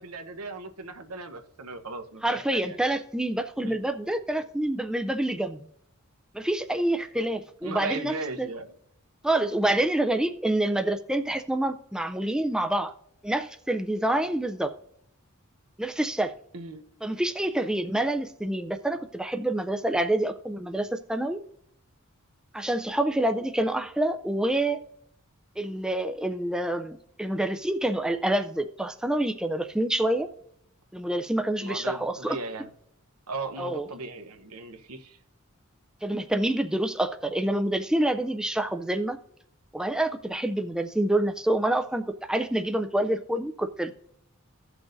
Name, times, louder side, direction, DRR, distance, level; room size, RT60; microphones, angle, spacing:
voice 1, 0.0-2.8 3.6-3.8 7.6-8.7 16.5-16.8 31.6-32.7 33.3-35.2, right 3 dB, 85° right, 1.0 m, -37 dB
voice 2, 2.2-5.6 6.3-8.5 9.2-12.9 13.2-14.7 15.8-16.3 17.0-21.4 22.5-24.8 25.6-30.3 30.9-32.4 33.6-33.9 36.0-39.2 39.7-43.9, right 1 dB, 5° right, 0.3 m, -27 dB
16.0 x 6.1 x 2.6 m
head